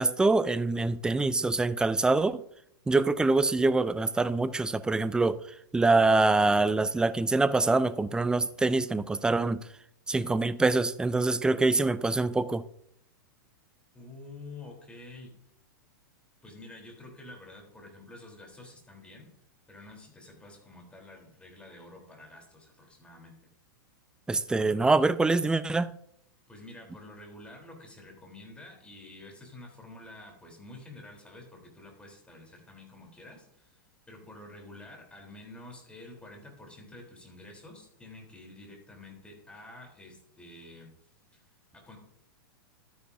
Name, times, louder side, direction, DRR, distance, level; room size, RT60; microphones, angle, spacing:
voice 1, 0.0-2.4 2.9-5.4 5.7-9.7 10.1-12.6 24.3-25.9, right 3 dB, 5° right, 0.4 m, -25 dB
voice 2, 13.9-15.3 16.4-19.3 19.7-23.4 26.5-40.9 41.3-42.0, left 2 dB, 10° left, 3.6 m, -49 dB
12.5 x 10.0 x 2.7 m
hypercardioid pair, 120°, 12 cm